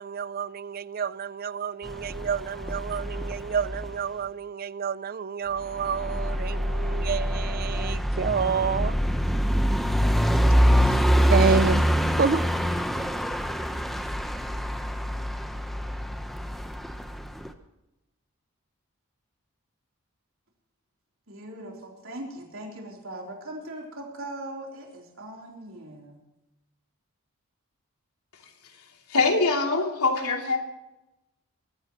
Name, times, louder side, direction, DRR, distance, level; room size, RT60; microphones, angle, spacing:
voice 1, 0.0-9.0 10.9-11.9 12.2-12.5, right 6 dB, 40° right, 0.4 m, -28 dB
sound 1, 1.9-4.1 5.7-17.5, equal, ahead, 0.9 m, -25 dB
voice 2, 21.3-26.2, right 1 dB, 65° right, 3.7 m, -40 dB
voice 3, 29.1-30.6, left 3 dB, 80° left, 2.9 m, -23 dB
23.0 x 14.0 x 3.1 m
head